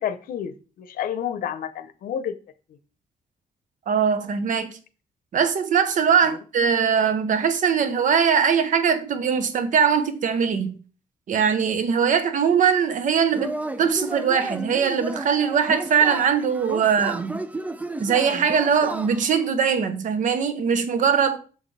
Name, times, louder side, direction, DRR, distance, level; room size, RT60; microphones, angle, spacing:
voice 1, 0.0-2.4 6.2-6.4, left 9 dB, 85° left, 0.7 m, -30 dB
voice 2, 3.9-4.8 5.3-10.8 11.3-17.4 18.0-21.4, right 7 dB, 65° right, 1.0 m, -21 dB
Yell / Cheering, 13.3-19.4, right 2 dB, 10° right, 0.5 m, -33 dB
7.0 x 6.4 x 3.3 m
cardioid pair, 120°, 14 cm